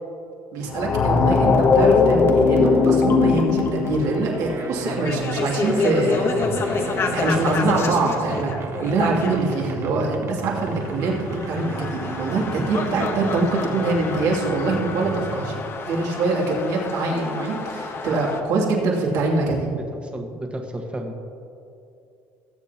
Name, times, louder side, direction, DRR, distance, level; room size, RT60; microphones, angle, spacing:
voice 1, 0.5-6.3 6.8-8.5 8.8-19.7, right 3 dB, 70° right, -3 dB, 2.8 m, -24 dB
sound 1, 0.7-9.6 11.0-18.4, left 4 dB, 40° left, 1.1 m, -23 dB
sound 2, 2.4-15.7, right 5 dB, 40° right, 0.9 m, -34 dB
voice 2, 20.0-21.3, right 1 dB, 15° right, 3 dB, 1.5 m, -32 dB
20.0 x 8.2 x 3.0 m, 2.7 s
cardioid pair, 105°, 6 cm